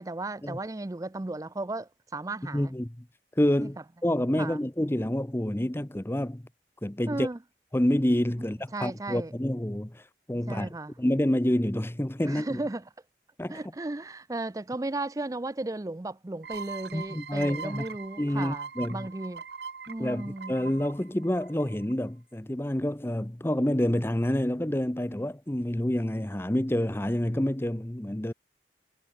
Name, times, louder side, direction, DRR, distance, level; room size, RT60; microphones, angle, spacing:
voice 1, 0.0-2.7 3.6-3.7 4.4-4.6 7.1-7.4 8.7-9.3 10.5-10.9 12.2-12.8 13.5-19.4 19.9-20.6, right 2 dB, 20° right, 0.4 m, -35 dB
voice 2, 2.4-3.0 3.4-3.8 4.0-6.4 6.8-7.3 7.7-10.0 10.3-10.7 11.0-12.6 13.4-13.6 16.9-17.9 18.2-19.1 20.0-28.3, left 1 dB, 15° left, 0.8 m, -28 dB
sound 1, 16.4-21.9, right 5 dB, 70° right, 0.9 m, -41 dB
head